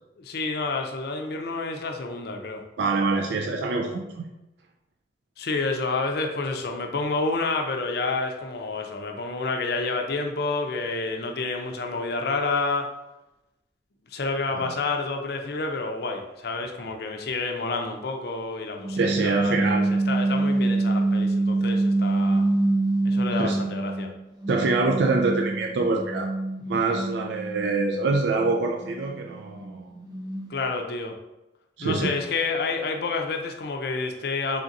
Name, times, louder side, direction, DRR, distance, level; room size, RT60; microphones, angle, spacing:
voice 1, 0.2-2.6 5.4-12.9 14.1-22.4 23.0-24.1 30.5-31.2 31.8-34.6, left 3 dB, 60° left, 4 dB, 0.5 m, -29 dB
voice 2, 2.8-4.2 14.6-14.7 19.0-20.0 23.4-23.6 24.5-26.3 26.7-29.9 31.8-32.2, right 3 dB, 70° right, 2 dB, 0.4 m, -25 dB
sound 1, 18.8-24.1 24.4-30.7, right 2 dB, 25° right, 0.6 m, -26 dB
4.0 x 3.5 x 2.5 m, 0.95 s
head